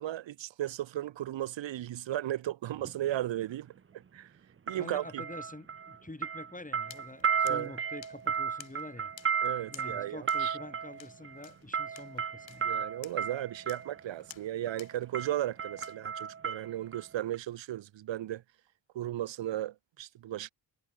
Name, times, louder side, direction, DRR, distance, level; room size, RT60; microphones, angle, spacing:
voice 1, 0.0-3.7 4.1-4.3 4.7-5.2 7.4-7.7 9.4-10.6 12.6-18.4 18.9-20.5, right 13 dB, 75° right, 1.0 m, -35 dB
sound 1, 2.7-2.9 4.7-6.0 6.2-13.9 14.7-14.9 15.1-17.0 17.3-17.4, right 6 dB, 30° right, 0.7 m, -34 dB
voice 2, 4.8-9.1 9.7-12.8, left 2 dB, 15° left, 5.4 m, -46 dB
sound 2, 6.9-15.9, left 11 dB, 85° left, 3.7 m, -55 dB
cardioid pair, 55°, 45 cm